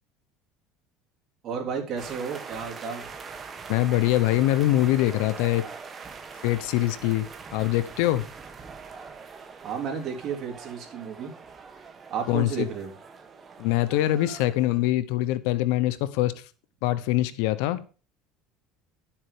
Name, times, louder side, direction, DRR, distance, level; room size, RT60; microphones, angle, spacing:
voice 1, 1.4-3.0 9.6-11.3 12.1-12.9, right 6 dB, 40° right, 3.4 m, -32 dB
sound 1, 2.0-14.9, right 5 dB, 25° right, 1.4 m, -43 dB
voice 2, 3.7-5.6 6.4-7.3 7.5-8.2 12.3-12.7 13.6-16.3 16.8-17.8, left 15 dB, 80° left, 0.9 m, -23 dB
11.0 x 7.4 x 5.0 m
cardioid pair, 130°, 0 cm